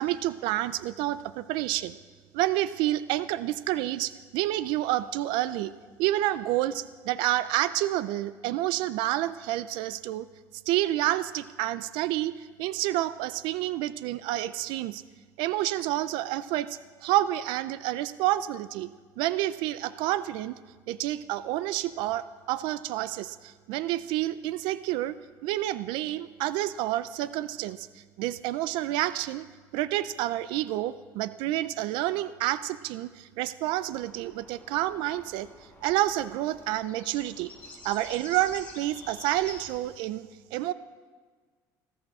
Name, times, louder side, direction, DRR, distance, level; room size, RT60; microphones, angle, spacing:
voice 1, 0.0-1.9 2.3-5.7 6.0-10.3 10.7-15.0 15.4-18.9 19.2-20.5 20.9-25.1 25.4-27.9 28.2-29.4 29.7-35.5 35.8-37.5 37.8-40.7, right 15 dB, 80° right, 15 dB, 0.5 m, -29 dB
sound 1, 33.9-39.8, left 3 dB, 15° left, 5.0 m, -48 dB
15.0 x 14.0 x 4.8 m, 1.5 s
cardioid pair, 130°, 8 cm